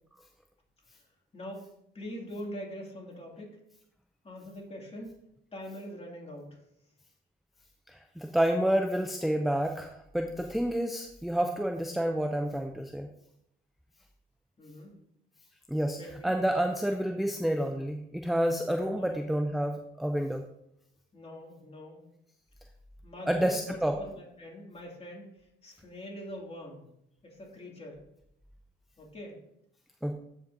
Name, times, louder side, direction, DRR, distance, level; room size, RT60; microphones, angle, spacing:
voice 1, 1.3-1.6 1.9-3.6 4.2-5.2 5.5-6.6 14.6-14.9 16.0-16.3 18.9-19.3 21.1-22.0 23.0-26.9 27.2-28.0 29.0-29.4, equal, 30° left, -1 dB, 2.4 m, -43 dB
voice 2, 7.9-13.1 15.7-16.0 16.2-20.4 23.3-23.9 30.0-30.2, right 1 dB, ahead, 4 dB, 0.5 m, -29 dB
12.0 x 5.3 x 2.7 m, 0.78 s
cardioid pair, 90°, 20 cm